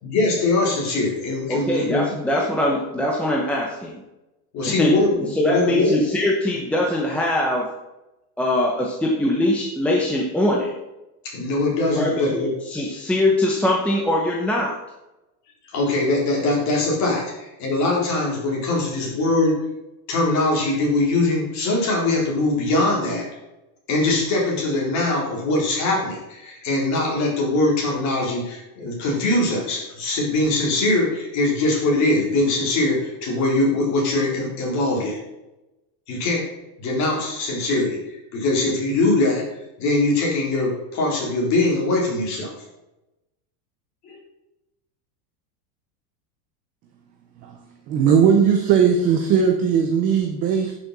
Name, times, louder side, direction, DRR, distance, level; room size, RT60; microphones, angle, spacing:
voice 1, 0.0-2.2 4.5-6.0 11.2-12.5 15.6-19.6 20.1-23.3 23.9-35.2 36.1-36.5 36.8-39.4 39.8-42.5 44.0-44.2, left 2 dB, 35° left, -2 dB, 4.2 m, -22 dB
voice 2, 1.5-4.0 4.7-5.0 5.3-7.7 8.4-10.7 12.0-12.4 12.7-14.8, left 1 dB, 5° left, -2 dB, 0.8 m, -22 dB
voice 3, 47.9-50.7, right 7 dB, 20° right, 3 dB, 0.4 m, -18 dB
11.0 x 6.8 x 5.9 m, 0.96 s
supercardioid pair, 170°, 49 cm